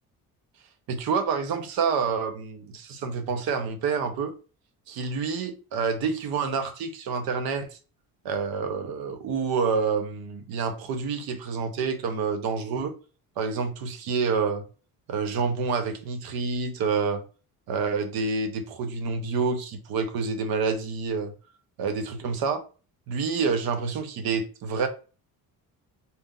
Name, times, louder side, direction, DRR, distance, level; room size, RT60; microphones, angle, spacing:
voice 1, 0.9-4.3 4.9-7.8 8.2-12.9 13.4-14.6 15.1-17.2 17.7-21.3 21.8-22.6 23.1-24.9, right 5 dB, 75° right, 0.9 m, -28 dB
4.2 x 2.5 x 3.7 m
cardioid pair, 180°, 37 cm